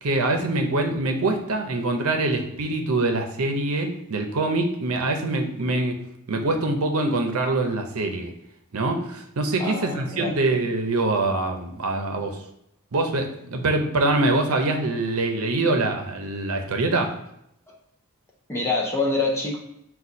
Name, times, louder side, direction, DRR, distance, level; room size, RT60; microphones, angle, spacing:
voice 1, 0.0-5.9 6.3-8.3 8.7-12.4 12.9-17.2, right 2 dB, 85° right, 4 dB, 0.7 m, -24 dB
voice 2, 9.6-10.3 18.5-19.6, left 3 dB, 15° left, -2 dB, 0.5 m, -25 dB
4.1 x 2.3 x 4.6 m, 0.77 s
head